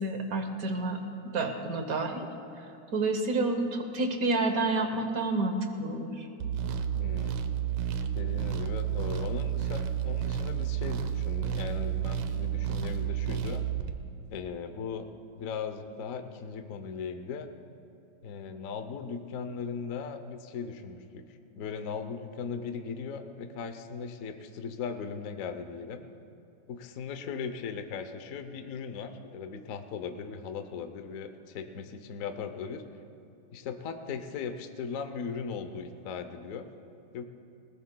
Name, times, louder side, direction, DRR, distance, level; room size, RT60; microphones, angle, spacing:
voice 1, 0.0-2.3 2.9-6.3, right 2 dB, 55° right, 6 dB, 1.1 m, -29 dB
sound 1, 6.4-13.9, right 9 dB, 85° right, 1.6 m, -31 dB
voice 2, 6.9-7.5 8.1-13.6 14.3-15.1 15.3-17.5 18.2-21.2 21.6-26.0 26.7-32.8 33.5-36.7 37.1-37.2, left 6 dB, 65° left, 7 dB, 0.8 m, -38 dB
20.0 x 19.0 x 2.2 m, 2.8 s
omnidirectional pair, 2.3 m